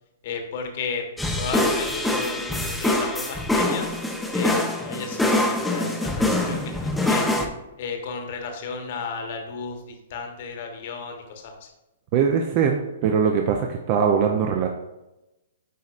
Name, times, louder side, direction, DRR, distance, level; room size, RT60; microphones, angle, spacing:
voice 1, 0.2-1.0 1.4-3.9 4.3-7.4 7.8-11.7, left 4 dB, 55° left, 4 dB, 1.1 m, -33 dB
sound 1, 1.2-7.5, left 1 dB, 5° left, 0.6 m, -24 dB
voice 2, 12.1-14.7, right 7 dB, 40° right, 2 dB, 0.6 m, -21 dB
9.3 x 4.1 x 2.5 m, 0.96 s
hypercardioid pair, 135°, 0 cm